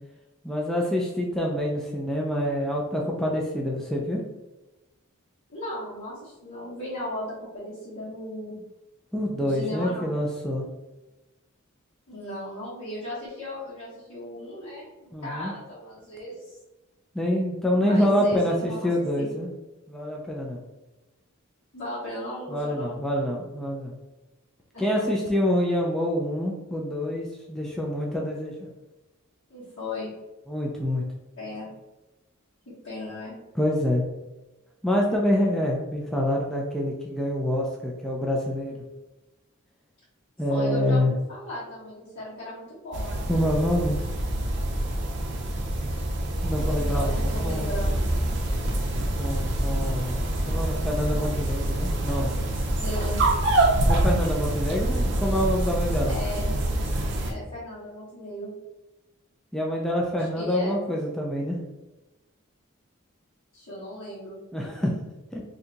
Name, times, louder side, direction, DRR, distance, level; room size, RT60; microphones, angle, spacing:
voice 1, 0.4-4.2 9.1-10.6 15.1-15.5 17.1-19.5 19.9-20.6 22.5-23.9 24.8-28.7 30.5-31.0 33.6-34.0 34.8-38.8 40.4-41.1 43.3-44.0 46.4-47.7 48.9-52.3 53.9-56.2 59.5-61.6 64.5-64.9 65.3-65.4, equal, ahead, -2 dB, 0.3 m, -26 dB
voice 2, 5.5-8.6 9.4-10.1 12.1-16.6 17.7-19.3 21.7-23.0 24.7-25.0 29.5-30.1 31.4-31.7 32.8-33.4 40.5-43.2 46.7-48.0 52.7-53.2 56.1-56.5 57.3-58.5 60.2-60.8 63.5-64.4, left 1 dB, 65° left, -12 dB, 1.2 m, -36 dB
sound 1, 42.9-57.3, right 1 dB, 55° right, 0.5 m, -26 dB
2.7 x 2.3 x 3.8 m, 1.0 s
head